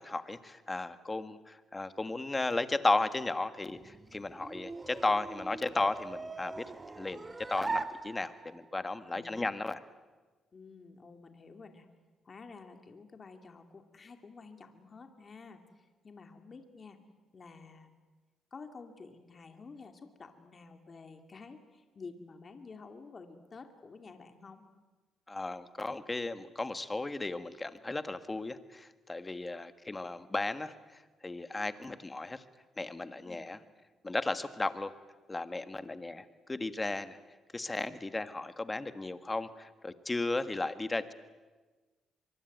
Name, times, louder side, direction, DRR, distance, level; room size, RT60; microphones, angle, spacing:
voice 1, 0.0-6.6 7.0-9.8 25.3-30.7 31.2-32.4 32.8-33.6 34.0-34.9 35.3-37.2 37.5-41.1, left 2 dB, 20° left, 11 dB, 1.6 m, -35 dB
sound 1, 3.8-8.7, right 3 dB, 25° right, 1.1 m, -41 dB
voice 2, 9.1-9.5 10.5-11.9 12.2-17.0 17.3-17.9 18.5-24.6 33.2-33.4, left 4 dB, 40° left, 6 dB, 2.6 m, -51 dB
24.0 x 23.5 x 9.3 m, 1.3 s
cardioid pair, 90°, 0 cm